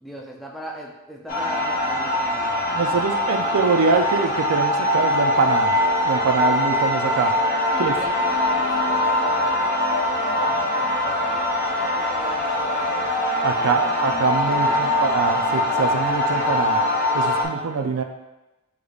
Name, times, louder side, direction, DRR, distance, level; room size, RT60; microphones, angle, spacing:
voice 1, 0.0-3.7 7.7-13.2 13.6-14.1 14.5-15.0, equal, ahead, -3 dB, 0.4 m, -39 dB
sound 1, 1.3-17.5, left 1 dB, 40° left, 0.8 m, -22 dB
voice 2, 2.7-5.7 6.0-7.3 7.8-7.9 13.4-16.8 17.1-18.0, right 4 dB, 65° right, 5 dB, 0.4 m, -23 dB
5.0 x 3.4 x 2.3 m, 1.0 s
head